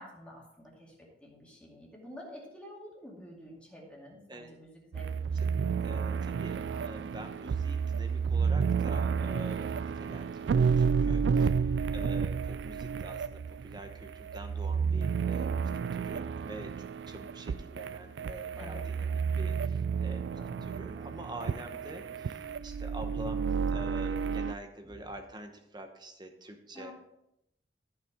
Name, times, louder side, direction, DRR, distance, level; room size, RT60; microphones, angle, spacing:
voice 1, 0.0-6.2 11.0-11.4 14.5-14.6 15.7-16.0 18.5-19.2 20.4-20.7 24.8-25.0 26.7-26.9, equal, 5° left, -4 dB, 2.3 m, -49 dB
sound 1, 4.9-24.5, right 6 dB, 75° right, 0.3 m, -31 dB
voice 2, 5.8-26.9, right 1 dB, 25° right, 6 dB, 1.0 m, -46 dB
13.0 x 5.7 x 3.7 m, 0.82 s
head